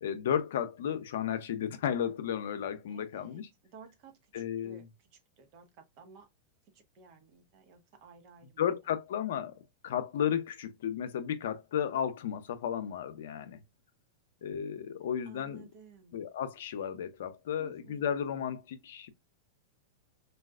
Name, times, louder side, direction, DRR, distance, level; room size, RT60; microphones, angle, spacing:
voice 1, 0.0-3.5 4.3-4.9 8.6-9.5 9.8-13.6 14.4-15.7 16.1-19.1, left 9 dB, 75° left, 0.6 m, -33 dB
voice 2, 2.9-3.4 3.7-4.9 5.4-6.3 6.7-8.5 15.3-16.2 17.6-18.1, right 6 dB, 50° right, 1.0 m, -55 dB
4.0 x 2.3 x 2.3 m
hypercardioid pair, 125°, 0 cm